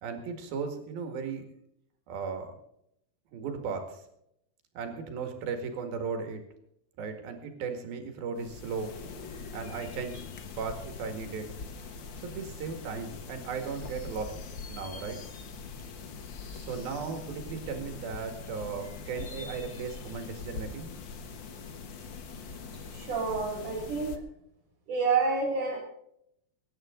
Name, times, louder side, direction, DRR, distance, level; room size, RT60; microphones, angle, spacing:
voice 1, 0.0-1.5 2.1-2.5 3.3-4.0 4.8-6.4 7.0-9.0 9.5-10.3 10.6-11.5 12.2-14.3 14.7-15.2 16.5-20.9, right 5 dB, 80° right, 5 dB, 3.9 m, -36 dB
sound 1, 8.4-24.2, left 5 dB, 80° left, 1.0 m, -43 dB
voice 2, 22.9-24.2 24.9-25.8, right 4 dB, 60° right, 1 dB, 4.3 m, -29 dB
24.0 x 10.5 x 3.8 m, 0.77 s
omnidirectional pair, 4.2 m